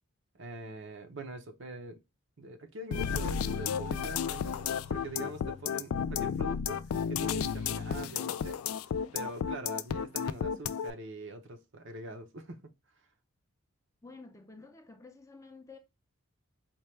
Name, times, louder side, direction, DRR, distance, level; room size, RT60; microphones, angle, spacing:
voice 1, 0.3-2.0 2.4-8.6 9.1-12.7, right 2 dB, 60° right, 0.7 m, -44 dB
sound 1, 2.9-10.9, left 7 dB, 85° left, 0.3 m, -32 dB
voice 2, 14.0-15.8, left 3 dB, 15° left, 0.5 m, -51 dB
4.4 x 2.2 x 3.2 m
head